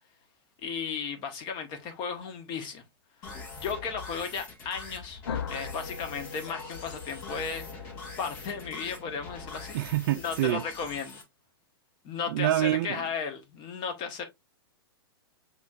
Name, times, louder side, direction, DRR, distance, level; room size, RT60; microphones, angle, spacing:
voice 1, 0.6-2.8 3.2-5.2 5.5-9.8 10.2-11.2 12.0-14.2, left 6 dB, 35° left, 1.2 m, -35 dB
sound 1, 3.2-11.2, left 4 dB, 55° left, 1.7 m, -44 dB
sound 2, 5.3-10.0, left 6 dB, 80° left, 0.5 m, -41 dB
voice 2, 9.7-10.6 12.3-13.0, right 14 dB, 55° right, 0.4 m, -26 dB
6.0 x 3.0 x 2.4 m
hypercardioid pair, 115°, 13 cm